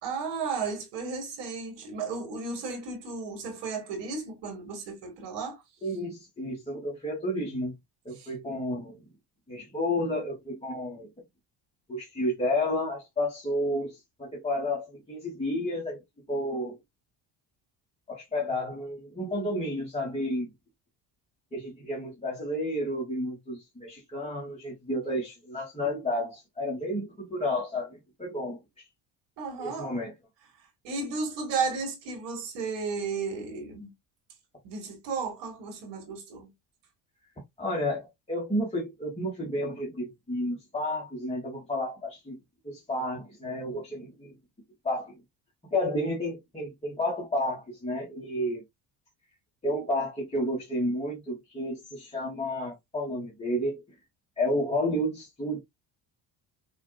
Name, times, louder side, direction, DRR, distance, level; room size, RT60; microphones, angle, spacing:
voice 1, 0.0-5.6 8.2-8.3 29.4-29.9 30.8-33.9 34.6-36.5, right 4 dB, 85° right, 2.3 m, -34 dB
voice 2, 5.8-7.7 8.0-9.0 9.5-11.1 11.9-16.0 16.3-16.8 18.1-20.5 21.5-28.8 29.6-30.1 37.6-42.3 42.6-44.4 44.8-45.1 45.7-48.6 49.6-53.8 54.4-55.6, left 1 dB, 15° left, 1.7 m, -31 dB
5.8 x 2.8 x 2.4 m
cardioid pair, 140°, 42 cm